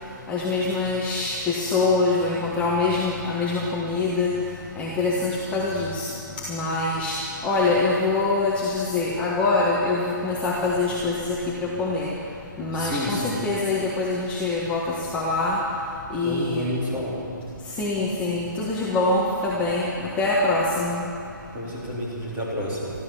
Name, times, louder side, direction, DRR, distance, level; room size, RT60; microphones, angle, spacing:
voice 1, 0.3-4.3 4.8-6.1 6.5-7.2 7.4-12.1 12.6-15.6 16.1-16.7 17.8-21.1, left 3 dB, 10° left, -5 dB, 1.3 m, -24 dB
voice 2, 12.7-13.3 16.2-17.3 21.5-22.9, left 1 dB, 15° right, -6 dB, 3.7 m, -29 dB
14.0 x 13.5 x 7.2 m, 2.5 s
hypercardioid pair, 155°, 11 cm